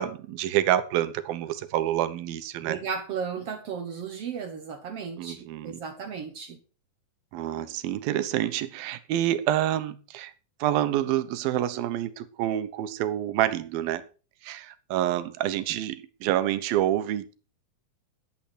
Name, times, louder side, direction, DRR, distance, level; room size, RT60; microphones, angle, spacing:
voice 1, 0.0-2.8 5.2-5.8 7.3-10.3 10.6-14.0 14.4-17.3, right 12 dB, 80° right, 2.8 m, -27 dB
voice 2, 2.6-6.6, right 6 dB, 65° right, 1.6 m, -35 dB
11.5 x 8.8 x 6.3 m
omnidirectional pair, 4.2 m